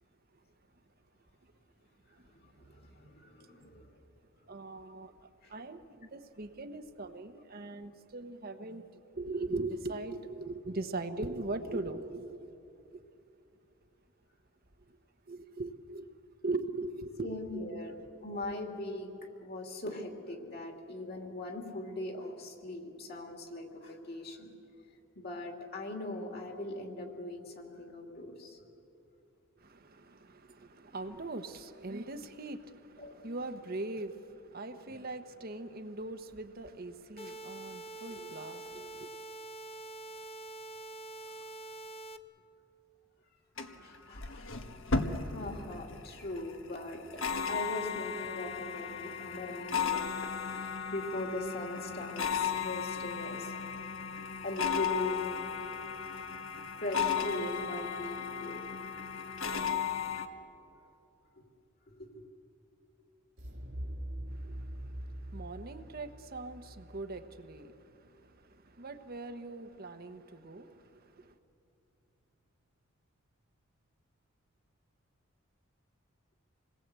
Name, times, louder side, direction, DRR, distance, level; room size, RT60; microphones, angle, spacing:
voice 1, 2.4-3.9 17.2-17.9 18.2-19.1 19.4-24.5 25.1-28.6 33.0-33.2 41.3-41.4 43.8-44.5 45.2-47.2 47.5-50.3 50.6-53.5 54.4-55.3 56.8-58.8 61.9-62.2, left 1 dB, 50° left, 3.0 m, -40 dB
voice 2, 4.5-5.1 5.5-12.6 12.9-13.0 14.9-15.0 15.3-16.1 16.4-17.7 29.6-39.1 64.3-71.4, right 2 dB, 45° right, 1.1 m, -41 dB
sound 1, 37.2-42.2, right 2 dB, 30° left, 0.8 m, -45 dB
sound 2, 43.6-60.3, left 6 dB, 70° left, 1.4 m, -35 dB
sound 3, 63.4-68.2, right 1 dB, 65° right, 1.9 m, -43 dB
27.0 x 20.0 x 8.3 m
head